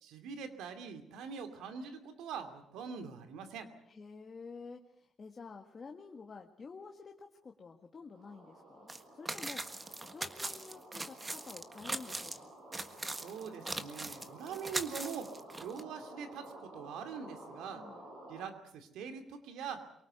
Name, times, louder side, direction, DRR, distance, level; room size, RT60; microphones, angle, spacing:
voice 1, 0.0-3.7 13.2-15.3 15.6-17.8 18.3-19.8, right 6 dB, 90° right, 8 dB, 2.6 m, -43 dB
voice 2, 3.9-9.6 10.1-12.5 17.8-18.0, left 4 dB, 40° left, 3 dB, 1.8 m, -50 dB
sound 1, 8.1-18.5, right 1 dB, 70° right, 6.3 m, -53 dB
sound 2, 8.9-9.0 9.3-12.4 12.7-15.8, right 2 dB, 20° right, 1.5 m, -40 dB
23.5 x 18.5 x 8.1 m, 0.73 s
cardioid pair, 90°, 0 cm